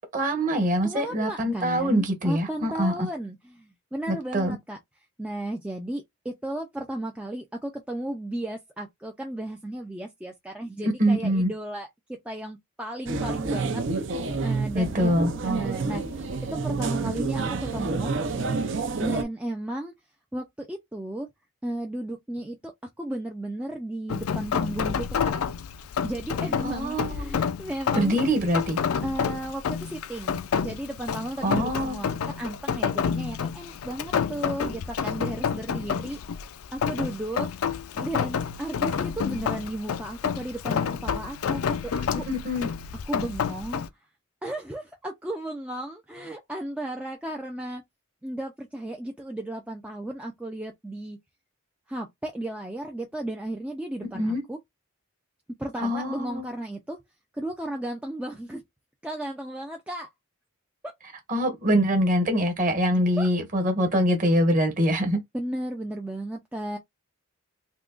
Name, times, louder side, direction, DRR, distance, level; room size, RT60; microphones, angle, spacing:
voice 1, 0.1-3.1 4.1-4.6 10.8-11.5 14.7-15.3 26.6-27.3 27.9-28.8 31.4-32.0 42.1-42.7 54.1-54.4 55.8-56.4 61.3-65.2, equal, 35° right, 1.2 m, -24 dB
voice 2, 0.8-4.8 5.2-13.8 14.4-15.1 15.5-16.2 16.5-18.1 19.0-19.9 20.3-21.3 21.6-22.7 23.0-25.3 26.0-28.2 29.0-36.2 36.7-37.5 37.9-42.3 43.1-43.8 44.4-47.8 48.2-51.2 51.9-54.6 55.6-57.0 57.3-58.6 59.0-60.1 60.8-60.9 63.2-63.3 65.3-66.8, right 1 dB, 5° right, 0.3 m, -34 dB
sound 1, 13.1-19.2, right 3 dB, 55° right, 0.6 m, -28 dB
Rain, 24.1-43.9, left 7 dB, 75° left, 0.4 m, -29 dB
3.6 x 2.8 x 2.4 m
head